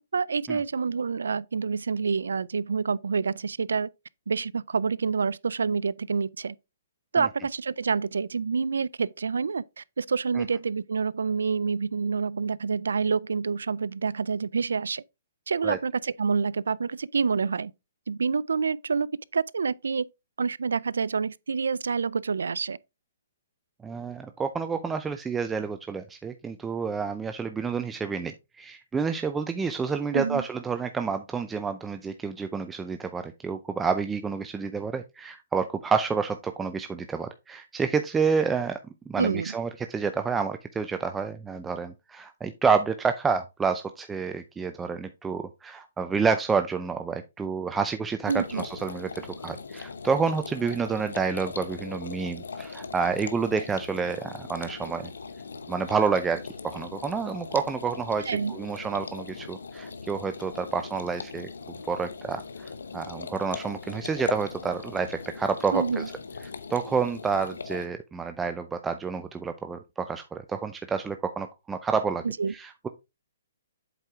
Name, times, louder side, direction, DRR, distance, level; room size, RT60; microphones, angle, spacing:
voice 1, 0.0-3.9 4.3-6.6 7.1-15.0 15.5-17.7 18.1-19.1 19.3-20.1 20.4-22.8 30.1-30.5 39.2-39.5 48.3-48.7 58.2-58.5 65.7-66.1 72.2-72.5, right 5 dB, 90° right, 0.3 m, -27 dB
voice 2, 23.8-38.8 39.1-55.1 55.7-61.5 61.9-66.0 66.7-72.2 72.5-72.9, right 5 dB, 10° right, 0.4 m, -29 dB
sound 1, 48.2-67.9, left 5 dB, 90° left, 0.9 m, -39 dB
7.9 x 4.5 x 3.5 m
hypercardioid pair, 150°, 0 cm